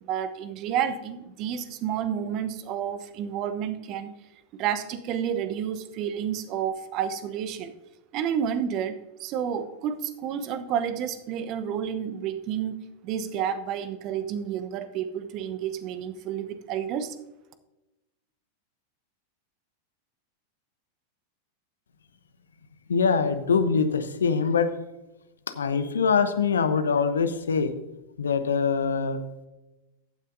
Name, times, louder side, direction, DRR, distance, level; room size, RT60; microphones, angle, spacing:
voice 1, 0.0-4.1 4.6-7.7 8.1-12.8 13.0-17.1, right 8 dB, 40° right, 11 dB, 0.9 m, -30 dB
voice 2, 22.9-24.7 25.5-27.7 28.2-29.2, left 5 dB, 70° left, 11 dB, 0.9 m, -23 dB
15.0 x 9.3 x 2.7 m, 1.0 s
figure-of-eight pair, 90°, 0 cm